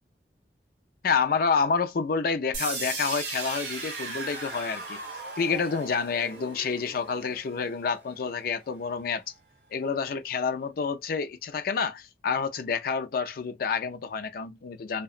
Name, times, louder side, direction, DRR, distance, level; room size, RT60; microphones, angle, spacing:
voice 1, 1.0-5.0 5.4-9.2 9.7-15.0, left 5 dB, 55° left, 0.4 m, -28 dB
sound 1, 2.5-8.5, right 3 dB, 70° right, 1.1 m, -37 dB
2.8 x 2.1 x 2.4 m
head